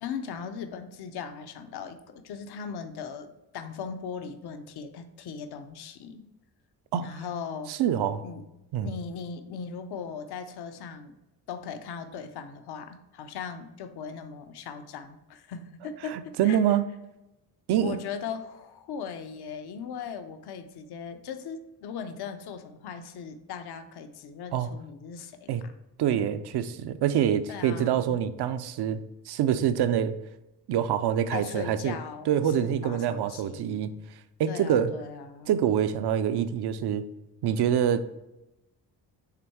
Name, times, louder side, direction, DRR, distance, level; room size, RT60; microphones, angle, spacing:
voice 1, 0.0-6.3 7.0-7.7 8.2-8.5 8.8-11.1 11.5-16.6 17.8-25.5 27.5-28.3 31.3-33.9 34.5-35.6, left 6 dB, 70° left, 9 dB, 0.7 m, -38 dB
voice 2, 7.7-8.2 8.7-8.9 16.1-16.9 17.7-18.0 24.5-24.7 25.5-25.6 26.0-29.0 29.3-30.1 30.7-32.0 32.3-33.9 34.4-34.9 35.5-37.1 37.4-38.2, right 9 dB, 75° right, 12 dB, 0.6 m, -25 dB
5.9 x 3.5 x 4.6 m, 0.95 s
cardioid pair, 90°, 40 cm